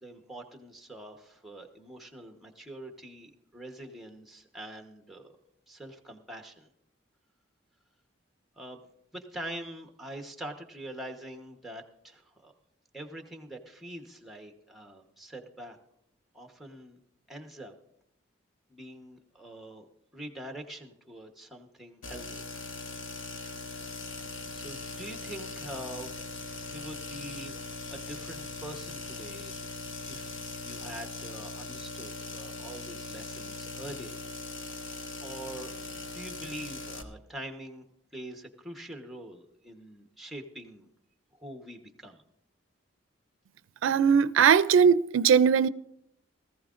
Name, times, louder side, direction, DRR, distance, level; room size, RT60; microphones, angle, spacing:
voice 1, 0.0-5.4 5.7-6.7 8.6-8.8 9.1-12.5 12.9-15.8 16.3-17.0 17.3-17.7 18.7-19.9 20.1-22.5 23.4-24.1 24.5-26.2 26.7-29.5 30.0-34.2 34.7-35.8 36.1-37.8 38.1-40.9 41.3-42.2, right 1 dB, ahead, 1.0 m, -44 dB
sound 1, 22.0-37.0, left 3 dB, 90° left, 1.2 m, -40 dB
voice 2, 43.8-45.7, right 7 dB, 90° right, 0.4 m, -20 dB
18.5 x 14.5 x 2.5 m
head